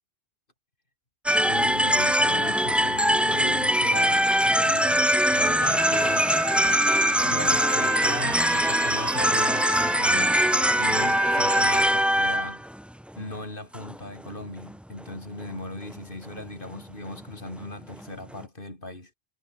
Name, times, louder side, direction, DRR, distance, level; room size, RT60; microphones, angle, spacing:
sound 1, 1.3-12.8 13.2-13.4 13.7-14.0 14.2-14.3 14.7-14.8 15.0-15.2 15.4-15.5 15.9-16.0 16.4-16.5 16.7-16.8 17.1-17.2 17.6-17.7 17.9-18.0 18.3-18.4, equal, ahead, 0.4 m, -22 dB
voice 1, 1.4-4.2 4.6-6.3 7.2-10.5 10.8-12.6 13.2-19.1, left 2 dB, 55° left, 4.9 m, -38 dB
sound 2, 5.6-11.8, right 8 dB, 50° right, 0.5 m, -35 dB
omnidirectional pair, 1.0 m